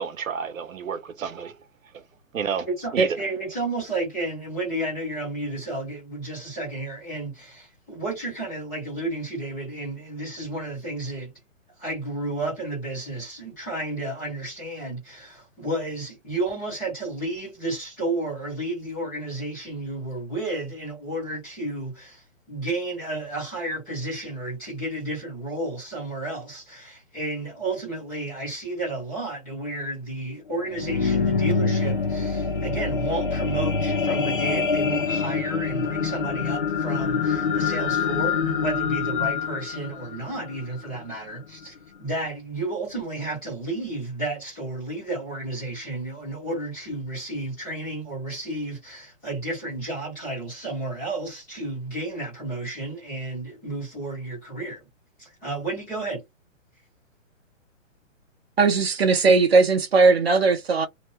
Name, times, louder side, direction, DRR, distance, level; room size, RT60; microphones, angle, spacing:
voice 1, 0.0-1.5 1.9-2.0 2.3-2.7 2.9-3.2, right 7 dB, 80° right, 0.8 m, -30 dB
voice 2, 2.7-11.3 11.8-54.8 55.2-56.2, right 2 dB, 10° left, 0.9 m, -32 dB
sound 1, 30.5-41.0 41.6-41.7, left 5 dB, 45° left, 0.4 m, -25 dB
voice 3, 58.6-60.9, right 4 dB, 50° right, 0.7 m, -18 dB
2.8 x 2.1 x 3.1 m
hypercardioid pair, 180°, 39 cm